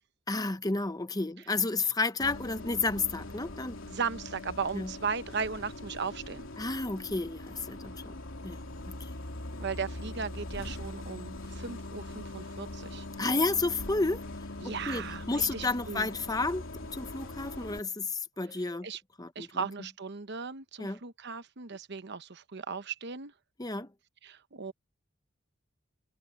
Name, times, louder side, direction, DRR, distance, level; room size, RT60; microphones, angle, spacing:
voice 1, 0.3-3.8 4.7-4.9 6.6-8.1 8.4-8.6 8.9-9.1 13.2-14.2 14.6-16.6 16.9-18.9 19.2-19.7 20.8-21.0 23.6-23.9, left 3 dB, 20° left, 0.9 m, -31 dB
Bus, 2.2-17.8, left 2 dB, 85° left, 3.1 m, -42 dB
voice 2, 3.9-6.5 9.6-13.1 14.6-16.1 18.8-19.0 19.3-23.3 24.2-24.7, right 5 dB, 60° right, 1.0 m, -37 dB
head